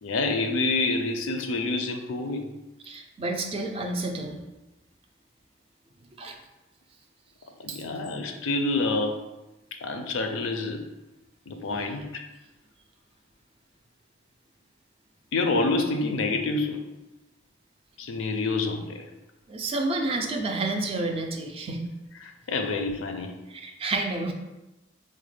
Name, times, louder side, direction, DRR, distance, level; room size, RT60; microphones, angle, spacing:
voice 1, 0.0-2.5 7.6-9.2 9.8-10.8 11.5-12.2 15.3-16.8 18.0-19.1 22.2-23.3, left 3 dB, 75° left, 5 dB, 0.4 m, -27 dB
voice 2, 2.8-4.4 6.2-6.4 7.7-7.8 19.5-21.9 23.5-24.3, right 2 dB, 30° right, 3 dB, 0.4 m, -30 dB
4.1 x 2.1 x 3.2 m, 1.0 s
head